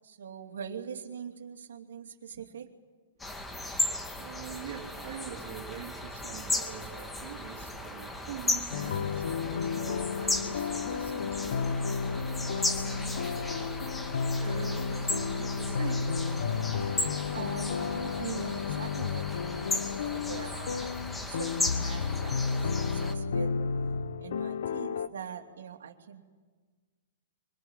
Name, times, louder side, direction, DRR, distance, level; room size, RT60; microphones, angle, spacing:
voice 1, 0.0-2.7 17.3-20.9 21.3-23.6 24.2-26.2, right 7 dB, 85° right, 2.8 m, -42 dB
sound 1, 3.2-23.1, left 2 dB, 10° left, 2.4 m, -36 dB
voice 2, 3.3-16.6, right 9 dB, 65° right, 3.2 m, -45 dB
sound 2, 8.7-25.1, left 5 dB, 75° left, 1.1 m, -32 dB
24.5 x 18.0 x 10.0 m
hypercardioid pair, 130°, 0 cm